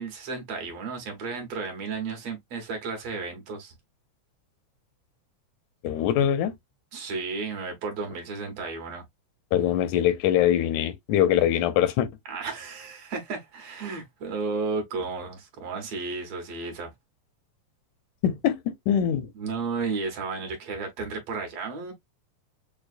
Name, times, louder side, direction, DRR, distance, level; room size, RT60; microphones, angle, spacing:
voice 1, 0.0-3.7 6.9-9.0 12.3-16.9 19.3-21.9, right 4 dB, 65° right, 2.2 m, -33 dB
voice 2, 5.8-6.5 9.5-12.1 18.2-19.3, left 10 dB, 85° left, 2.1 m, -23 dB
6.6 x 2.3 x 2.4 m
omnidirectional pair, 3.3 m